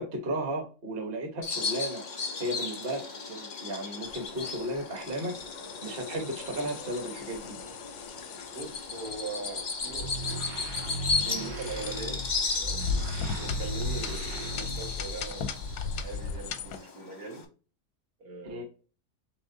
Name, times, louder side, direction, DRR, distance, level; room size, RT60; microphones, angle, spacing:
voice 1, 0.0-2.0 2.4-5.4 5.8-7.6 11.2-11.5 18.4-18.6, right 1 dB, 40° right, 1.1 m, -34 dB
Bird vocalization bird call bird song, 1.4-17.4, left 4 dB, 45° left, 0.6 m, -36 dB
sound 1, 4.0-16.8, left 5 dB, 85° left, 1.2 m, -38 dB
voice 2, 8.4-10.4 11.1-12.2 12.6-12.8 13.4-17.5 18.2-18.6, right 4 dB, 65° right, 2.0 m, -41 dB
sound 2, 9.8-15.3, equal, 80° right, 1.3 m, -37 dB
5.3 x 3.2 x 2.6 m
omnidirectional pair, 1.7 m